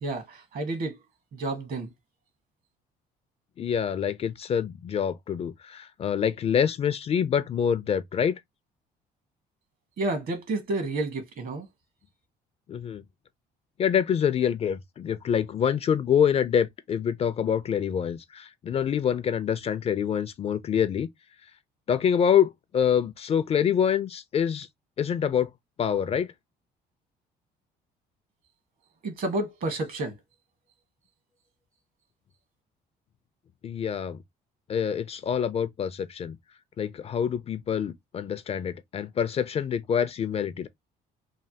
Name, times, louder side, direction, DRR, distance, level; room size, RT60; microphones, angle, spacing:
voice 1, 0.0-1.0 1.3-1.9 10.0-11.7 29.0-30.2, right 2 dB, 55° right, 1.2 m, -30 dB
voice 2, 3.6-8.4 12.7-13.0 13.8-21.1 21.9-24.7 25.0-25.5 25.8-26.3 33.6-34.2 34.7-36.4 36.8-40.7, left 8 dB, 35° left, 0.4 m, -26 dB
3.2 x 2.2 x 2.7 m
cardioid pair, 110°, 17 cm